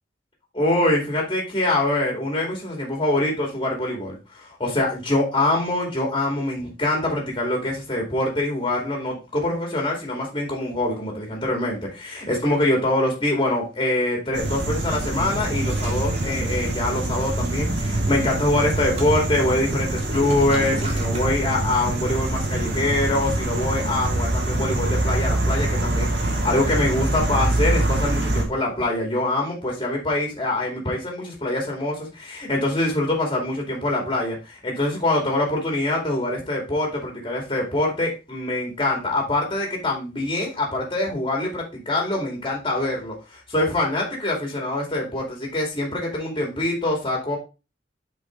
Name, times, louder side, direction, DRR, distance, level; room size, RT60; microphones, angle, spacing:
voice 1, 0.5-47.4, left 1 dB, 30° left, 0 dB, 2.6 m, -24 dB
sound 1, 14.3-28.4, right 1 dB, 70° right, 2.2 m, -24 dB
Toilet flush, 15.2-21.3, right 1 dB, 35° right, 2.0 m, -38 dB
7.8 x 5.1 x 3.8 m, 0.29 s
head